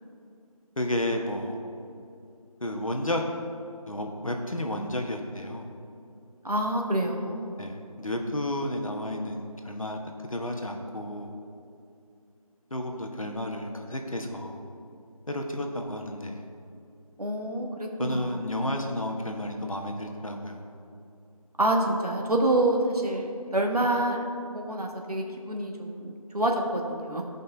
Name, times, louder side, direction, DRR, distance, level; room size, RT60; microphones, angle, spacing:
voice 1, 0.8-1.6 2.6-3.2 3.9-5.7 7.6-11.3 12.7-14.6 15.3-16.4 18.0-20.6, left 1 dB, 65° left, 3 dB, 1.2 m, -32 dB
voice 2, 6.4-7.5 17.2-18.4 21.6-24.2 24.5-27.2, right 1 dB, 85° right, 1 dB, 1.5 m, -27 dB
14.0 x 5.4 x 3.9 m, 2.6 s
figure-of-eight pair, 180°, 19 cm